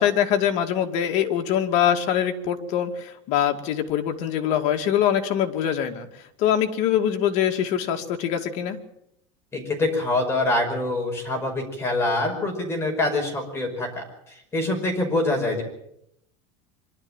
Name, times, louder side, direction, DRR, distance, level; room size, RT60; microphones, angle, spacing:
voice 1, 0.0-6.1 6.4-8.8, left 9 dB, 55° left, 4 dB, 2.4 m, -23 dB
voice 2, 9.5-14.0 14.5-15.6, left 2 dB, 15° left, 2 dB, 5.3 m, -25 dB
24.5 x 12.0 x 9.0 m, 0.78 s
supercardioid pair, 140°, 15 cm